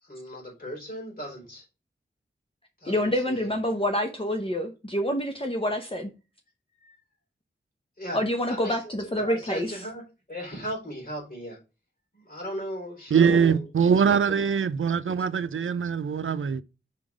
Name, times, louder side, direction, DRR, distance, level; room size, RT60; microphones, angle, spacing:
voice 1, 0.0-1.6 2.8-3.5 6.8-7.0 8.0-8.2 8.5-10.0 10.3-11.6 12.1-13.7 14.1-14.4, equal, 45° left, 4.2 m, -37 dB
voice 2, 2.9-6.1 8.1-9.7, left 1 dB, 25° left, 0.9 m, -27 dB
voice 3, 13.1-16.6, right 6 dB, 85° right, 0.5 m, -22 dB
5.8 x 3.8 x 4.8 m
wide cardioid pair, 75°, 20 cm